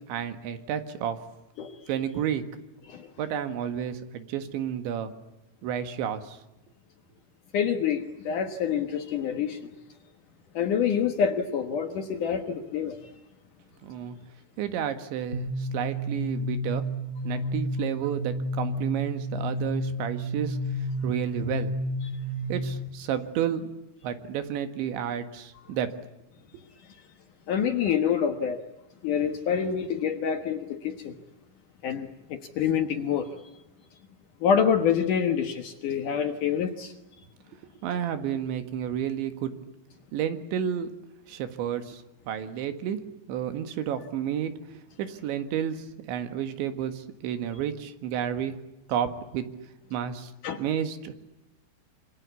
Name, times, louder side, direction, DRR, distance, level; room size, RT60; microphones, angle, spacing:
voice 1, 0.1-1.2 1.9-2.5 3.2-5.1 5.6-6.4 13.8-14.2 14.6-16.9 17.2-21.7 22.5-23.7 24.0-26.0 37.8-39.5 40.1-40.9 41.3-43.0 43.3-48.6 48.9-49.5 49.9-50.3 50.6-51.1, right 9 dB, 85° right, 9 dB, 4.1 m, -31 dB
voice 2, 7.5-9.7 10.5-13.0 27.5-28.6 29.0-31.2 31.8-33.3 34.4-36.9 50.4-50.6, left 7 dB, 60° left, 7 dB, 2.4 m, -27 dB
sound 1, 15.3-22.9, equal, 20° left, 3.9 m, -31 dB
26.5 x 25.5 x 8.4 m, 0.95 s
omnidirectional pair, 5.1 m